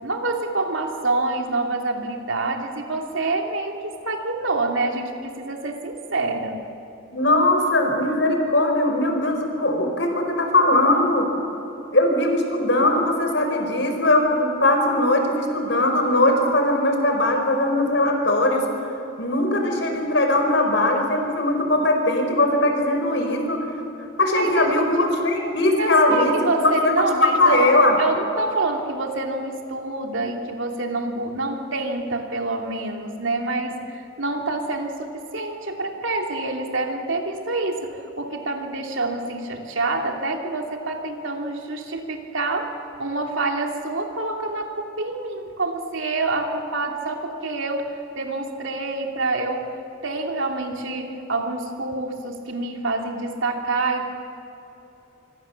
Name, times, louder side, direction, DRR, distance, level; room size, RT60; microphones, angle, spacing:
voice 1, 0.0-6.6 24.3-25.1 25.8-27.7 28.0-54.1, right 2 dB, 75° right, 2 dB, 3.0 m, -27 dB
voice 2, 7.1-11.3 11.9-18.7 19.2-23.6 24.2-27.9, left 1 dB, 65° left, 4 dB, 5.0 m, -20 dB
26.0 x 25.0 x 7.3 m, 3.0 s
head